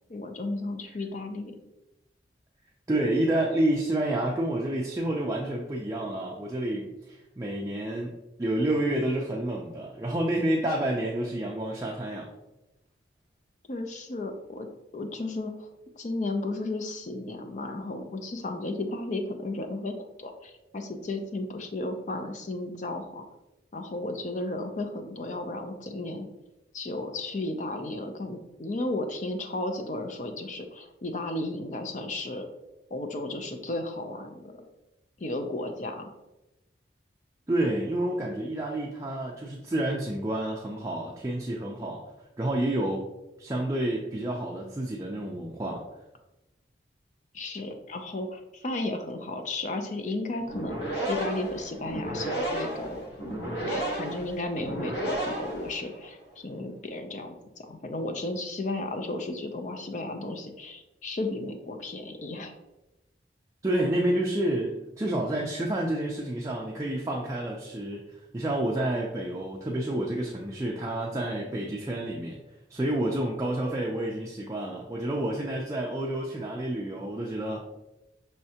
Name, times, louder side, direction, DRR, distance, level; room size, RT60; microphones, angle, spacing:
voice 1, 0.1-1.5 13.7-14.7 14.9-15.7 16.0-23.2 23.7-26.3 26.7-32.5 32.9-34.6 35.2-36.1 47.3-50.8 51.1-53.0 53.6-62.6, left 2 dB, 40° left, 6 dB, 0.5 m, -34 dB
voice 2, 2.9-8.1 8.4-12.3 37.5-42.0 42.4-43.0 43.4-45.8 63.6-72.4 72.7-77.6, right 1 dB, 15° right, -2 dB, 0.4 m, -29 dB
sound 1, 50.4-56.1, right 1 dB, 70° left, 1.2 m, -33 dB
5.6 x 3.2 x 2.8 m, 0.97 s
head